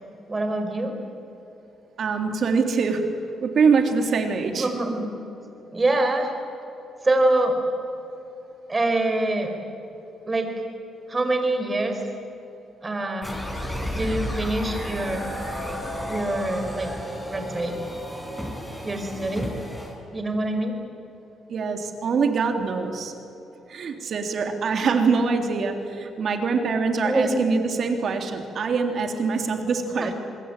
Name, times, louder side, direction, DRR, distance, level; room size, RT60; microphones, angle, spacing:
voice 1, 0.3-0.9 4.5-5.1 5.7-6.3 7.0-7.6 8.7-9.6 10.3-10.5 11.1-12.0 12.8-13.4 13.9-15.3 16.1-16.9 17.3-17.8 18.8-19.5 20.1-20.7 27.0-27.3 30.0-30.1, right 2 dB, 25° right, 5 dB, 5.0 m, -25 dB
voice 2, 2.0-3.1 3.4-4.7 21.5-23.1 23.7-30.1, right 5 dB, 55° right, 5 dB, 3.4 m, -24 dB
sound 1, 13.2-19.9, equal, 10° left, 6.5 m, -32 dB
26.5 x 21.5 x 9.1 m, 3.0 s
cardioid pair, 90°, 0 cm